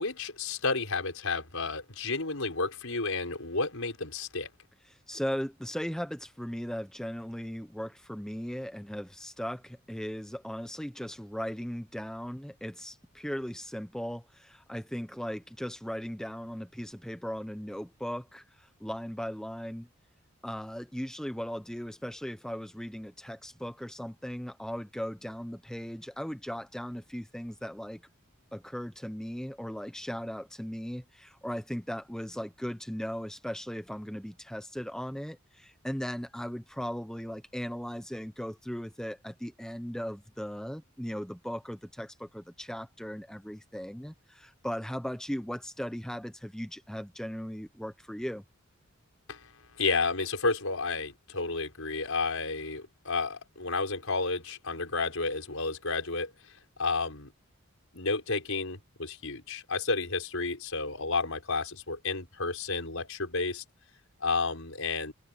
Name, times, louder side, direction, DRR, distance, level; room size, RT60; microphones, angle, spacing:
voice 1, 0.0-4.5 49.3-49.5 49.8-56.3 56.8-57.3 57.9-63.6 64.2-65.1, left 3 dB, 75° left, 5.1 m, -31 dB
voice 2, 4.9-19.9 20.4-28.0 28.5-48.4, equal, 5° left, 1.0 m, -38 dB
head